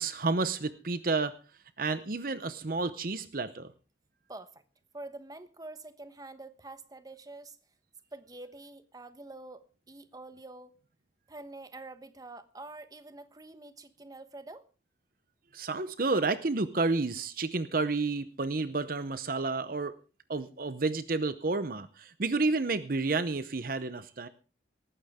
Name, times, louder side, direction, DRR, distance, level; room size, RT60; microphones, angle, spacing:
voice 1, 0.0-1.3 1.8-3.7 15.5-20.0 20.3-24.3, right 3 dB, 50° right, 0.8 m, -30 dB
voice 2, 4.3-4.6 4.9-7.6 8.1-10.8 11.3-14.7, right 2 dB, 20° right, 1.1 m, -46 dB
18.5 x 14.5 x 3.6 m
head